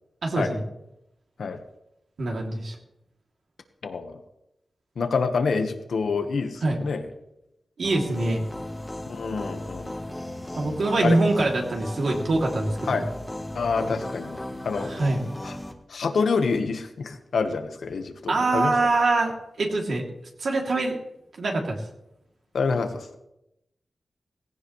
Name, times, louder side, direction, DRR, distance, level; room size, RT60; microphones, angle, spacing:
voice 1, 0.2-0.6 2.2-2.7 6.6-6.8 7.8-8.4 10.6-13.0 14.9-15.2 18.3-20.0 20.4-21.0 21.4-21.8, right 2 dB, 70° right, -1 dB, 3.1 m, -24 dB
voice 2, 3.8-4.2 4.9-7.1 9.1-10.0 11.0-11.2 12.8-13.0 13.5-14.9 15.4-15.6 15.9-18.7 22.5-23.2, left 4 dB, 80° left, 6 dB, 1.5 m, -27 dB
sound 1, 7.8-15.7, left 1 dB, 10° left, 1.5 m, -36 dB
18.0 x 16.0 x 3.4 m, 0.86 s
wide cardioid pair, 125°, 0 cm